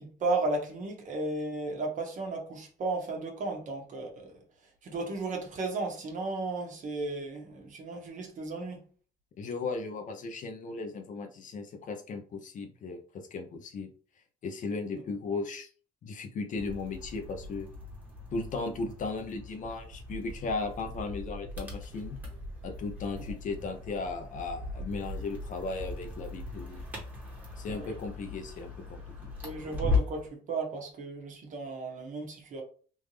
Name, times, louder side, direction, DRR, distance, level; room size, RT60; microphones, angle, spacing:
voice 1, 0.0-4.4 4.8-8.8 27.7-27.9 29.4-32.6, right 3 dB, 50° right, 1.2 m, -34 dB
voice 2, 9.4-13.9 14.4-15.7 16.0-17.7 18.3-22.2 22.6-26.9 27.6-29.3, left 3 dB, 50° left, 0.7 m, -36 dB
sound 1, 16.6-30.3, left 3 dB, 10° right, 1.4 m, -38 dB
3.6 x 2.6 x 3.2 m
cardioid pair, 110°, 17 cm